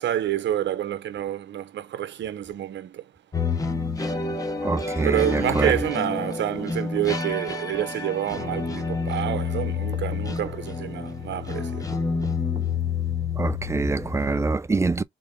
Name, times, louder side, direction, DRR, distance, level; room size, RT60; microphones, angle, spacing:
voice 1, 0.0-3.0 5.0-11.9, right 11 dB, 65° right, 0.9 m, -28 dB
sound 1, 3.3-14.4, left 4 dB, 15° left, 1.2 m, -29 dB
voice 2, 4.6-5.7 13.4-15.0, right 3 dB, 15° right, 0.5 m, -24 dB
sound 2, 5.0-6.0 7.0-7.1 7.7-7.9 8.5-8.7 9.9-10.7 11.9-12.8, right 5 dB, 30° right, 1.0 m, -41 dB
3.8 x 3.4 x 3.8 m
cardioid pair, 90°, 20 cm